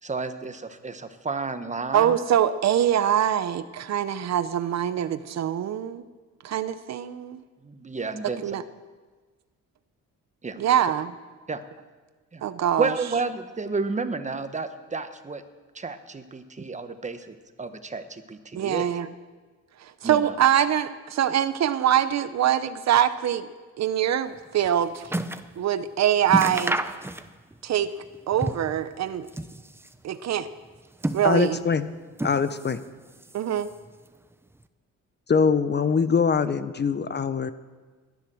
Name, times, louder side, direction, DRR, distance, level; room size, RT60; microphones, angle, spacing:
voice 1, 0.0-2.2 7.6-8.4 10.4-10.6 11.5-11.6 12.3-12.5 12.8-15.4 15.7-18.9 20.0-20.3, right 4 dB, 25° right, 9 dB, 1.3 m, -31 dB
voice 2, 1.9-6.0 6.4-7.4 8.4-8.6 10.6-11.1 12.4-12.9 18.5-19.1 19.8-25.1 25.6-26.8 27.6-29.3 30.0-30.5 31.1-31.6 33.3-33.7, right 10 dB, 60° right, 13 dB, 0.8 m, -24 dB
sound 1, 24.4-25.5 25.9-26.0 26.3-27.6 27.9-28.8 29.2-30.0 30.7-31.7 32.1-32.9 33.1-33.9 34.6-34.7, right 1 dB, 10° right, 0.8 m, -31 dB
voice 3, 31.2-31.8 32.2-32.8 35.3-37.5, left 5 dB, 35° left, 13 dB, 0.9 m, -23 dB
20.0 x 10.5 x 6.3 m, 1.4 s
cardioid pair, 90°, 30 cm